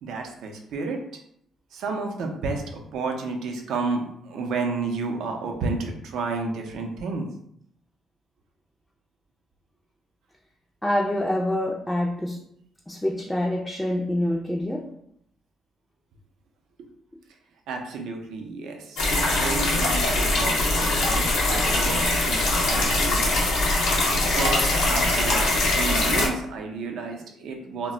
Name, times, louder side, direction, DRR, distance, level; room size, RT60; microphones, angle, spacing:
voice 1, 0.0-1.0 1.7-7.3 17.7-19.1 19.3-23.4 24.2-27.9, right 3 dB, 80° right, 2 dB, 0.4 m, -31 dB
voice 2, 10.8-12.4 12.9-14.9, left 1 dB, 10° left, -2 dB, 0.3 m, -26 dB
sound 1, 19.0-26.3, left 2 dB, 90° left, 0.7 m, -22 dB
2.1 x 2.0 x 3.6 m, 0.71 s
cardioid pair, 90°, 0 cm